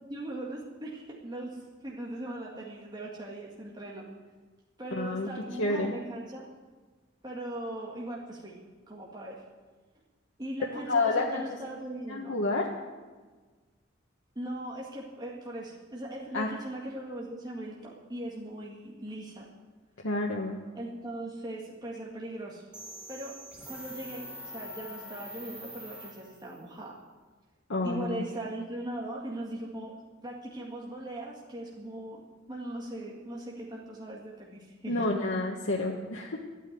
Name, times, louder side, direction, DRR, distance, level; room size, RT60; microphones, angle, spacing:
voice 1, 0.0-4.1 4.8-6.5 7.2-8.6 8.9-9.4 10.4-12.4 14.4-19.5 20.8-22.6 23.1-23.3 23.6-26.9 27.8-30.0 30.2-32.2 32.5-35.1, right 1 dB, 25° right, -3 dB, 1.9 m, -39 dB
voice 2, 4.9-5.3 5.6-5.9 10.7-11.4 12.1-12.7 16.3-16.5 20.0-20.6 27.7-28.2 34.9-36.4, left 2 dB, 85° left, -1 dB, 1.4 m, -29 dB
sound 1, 22.7-26.6, equal, 5° right, 2.5 m, -44 dB
13.0 x 9.1 x 9.3 m, 1.3 s
head